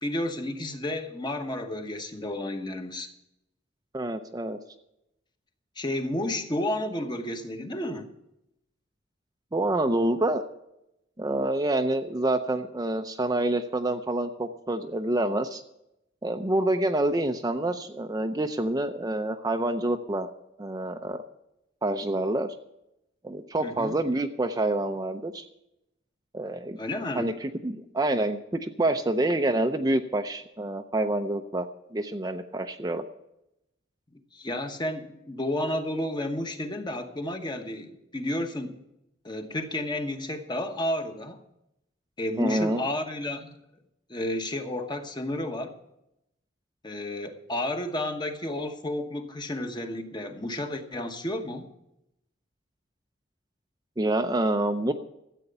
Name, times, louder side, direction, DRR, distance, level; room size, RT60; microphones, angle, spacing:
voice 1, 0.0-3.1 5.8-8.1 23.6-24.0 26.8-27.4 34.3-38.8 39.2-41.4 42.2-43.6 44.1-45.7 46.8-51.7, left 1 dB, 20° left, 6 dB, 1.1 m, -31 dB
voice 2, 3.9-4.6 9.5-10.4 11.2-15.6 16.2-20.3 20.6-21.2 21.8-22.5 23.2-25.5 26.3-26.8 27.1-33.0 42.4-42.8 54.0-54.9, right 1 dB, 20° right, 6 dB, 0.6 m, -27 dB
14.0 x 8.4 x 6.7 m, 0.84 s
head